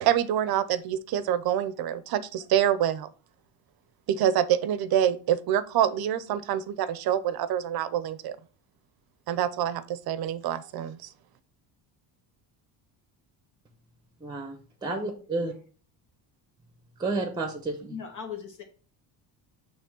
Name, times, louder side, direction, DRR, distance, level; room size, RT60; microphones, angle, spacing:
voice 1, 0.0-3.1 4.1-8.4 9.3-11.1, right 10 dB, 55° right, 15 dB, 0.7 m, -26 dB
voice 2, 14.2-15.5 17.0-18.0, right 3 dB, 10° right, 6 dB, 0.9 m, -31 dB
voice 3, 17.9-18.6, left 7 dB, 45° left, 2 dB, 1.0 m, -39 dB
6.9 x 3.3 x 6.1 m, 0.40 s
cardioid pair, 150°, 44 cm